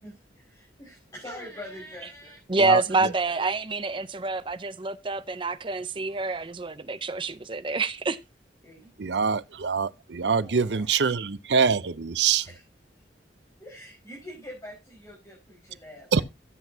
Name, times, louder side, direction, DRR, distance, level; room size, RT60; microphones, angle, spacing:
voice 1, 0.0-2.4 8.6-8.9 10.2-11.0 12.4-12.6 13.6-16.2, left 1 dB, 20° left, 4.6 m, -44 dB
voice 2, 2.5-8.2, right 3 dB, 30° right, 0.6 m, -27 dB
voice 3, 9.0-12.4 16.1-16.2, right 6 dB, 75° right, 0.6 m, -24 dB
15.0 x 8.1 x 2.7 m
head